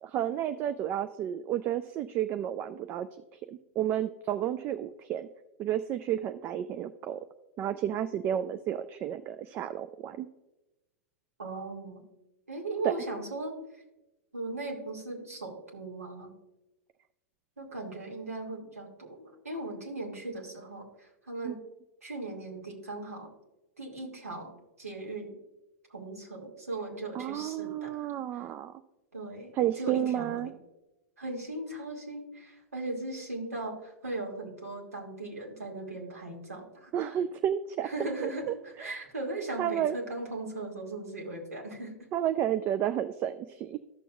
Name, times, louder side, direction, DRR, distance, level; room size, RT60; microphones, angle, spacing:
voice 1, 0.0-5.3 5.6-7.2 7.6-10.3 12.8-12.9 21.4-21.5 27.1-28.8 29.5-30.5 36.9-38.9 39.6-40.0 42.1-43.8, right 11 dB, 30° right, 12 dB, 0.3 m, -31 dB
voice 2, 11.4-12.0 12.5-13.5 14.3-16.3 17.6-21.6 22.0-23.3 23.8-24.5 24.8-25.4 25.9-28.1 29.1-30.4 31.2-37.1 37.8-41.9, right 2 dB, 80° right, 0 dB, 2.2 m, -38 dB
13.5 x 6.8 x 2.3 m, 0.98 s
figure-of-eight pair, 100°, 8 cm